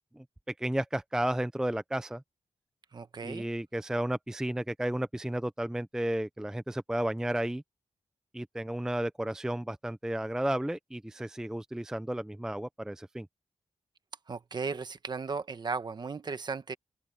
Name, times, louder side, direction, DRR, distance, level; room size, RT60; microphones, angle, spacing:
voice 1, 0.6-2.2 3.2-7.6 8.3-13.3, right 1 dB, 5° right, 0.5 m, -33 dB
voice 2, 2.9-3.5 14.3-16.7, right 4 dB, 40° right, 1.1 m, -36 dB
open air
wide cardioid pair, 175°, 12 cm